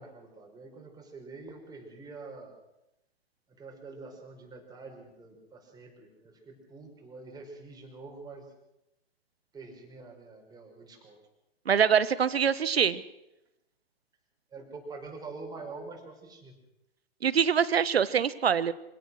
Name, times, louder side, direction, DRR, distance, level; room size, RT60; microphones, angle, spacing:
voice 1, 0.0-2.5 3.5-8.5 9.5-11.2 14.5-16.5, right 3 dB, 10° right, 1 dB, 5.5 m, -46 dB
voice 2, 11.7-13.0 17.2-18.7, right 7 dB, 75° right, 16 dB, 1.2 m, -24 dB
26.0 x 17.5 x 6.4 m, 0.89 s
hypercardioid pair, 120°, 31 cm